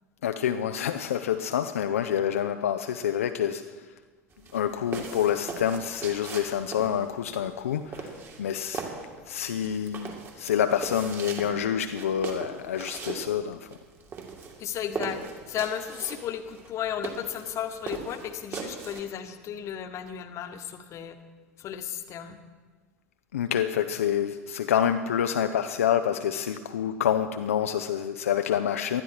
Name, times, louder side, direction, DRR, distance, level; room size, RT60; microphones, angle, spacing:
voice 1, 0.2-3.9 4.5-8.9 9.3-13.7 23.3-29.0, left 9 dB, 70° left, 8 dB, 0.6 m, -27 dB
sound 1, 4.3-19.0, right 4 dB, 30° right, 2.7 m, -39 dB
voice 2, 14.6-15.2 15.5-21.2 21.6-22.4, left 9 dB, 40° left, 9 dB, 1.3 m, -34 dB
19.5 x 12.5 x 4.7 m, 1.4 s
figure-of-eight pair, 75°, 8 cm